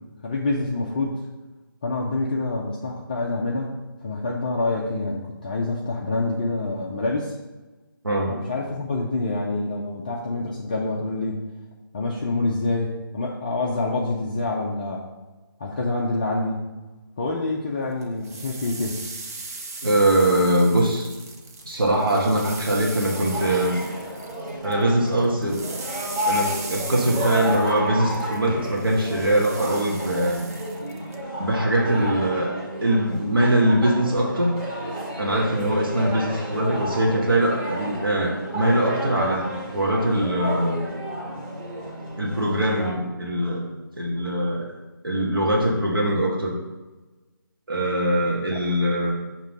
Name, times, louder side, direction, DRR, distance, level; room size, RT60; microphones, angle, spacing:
voice 1, 0.2-1.2 1.8-3.7 4.0-7.3 8.3-11.4 11.9-15.1 15.6-16.6 17.2-19.0 48.5-48.6, left 2 dB, 25° left, -3 dB, 0.4 m, -26 dB
voice 2, 8.0-8.4 19.8-21.1 21.7-23.8 24.6-25.7 26.3-30.4 31.4-34.6 35.2-40.9 42.2-43.7 44.0-44.7 45.0-46.6 47.7-49.1, right 1 dB, 75° right, -3 dB, 1.2 m, -22 dB
sound 1, 18.0-24.8 25.1-31.2, right 3 dB, 40° right, 0.7 m, -38 dB
sound 2, 23.1-42.9, equal, 20° right, 1.5 m, -31 dB
6.2 x 3.0 x 5.0 m, 1.2 s
figure-of-eight pair, 155°, 12 cm